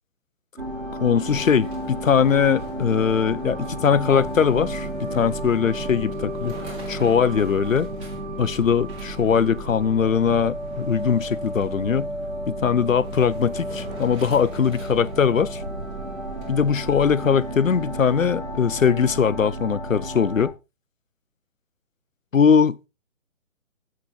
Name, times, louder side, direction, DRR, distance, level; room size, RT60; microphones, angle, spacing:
sound 1, 0.6-20.5, right 1 dB, 75° right, 5.1 m, -32 dB
voice 1, 1.0-6.5 6.9-7.9 8.4-12.1 12.5-15.6 16.5-20.5 22.3-22.9, left 7 dB, 70° left, 0.9 m, -21 dB
sound 2, 1.2-18.4, right 2 dB, 15° right, 3.1 m, -46 dB
11.5 x 7.9 x 4.0 m
figure-of-eight pair, 140°, 40 cm